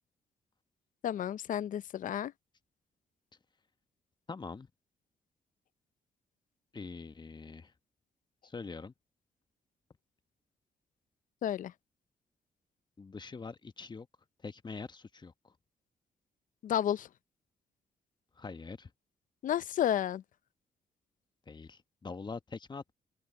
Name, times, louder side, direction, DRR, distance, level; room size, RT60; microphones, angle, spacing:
voice 1, 1.0-2.3 11.4-11.7 16.6-17.1 19.4-20.2, left 10 dB, 65° left, 0.6 m, -31 dB
voice 2, 4.3-4.7 6.7-7.7 8.4-8.9 13.0-14.1 14.4-15.5 18.4-18.9 21.5-22.9, left 4 dB, 30° left, 1.1 m, -44 dB
supercardioid pair, 65°, 15 cm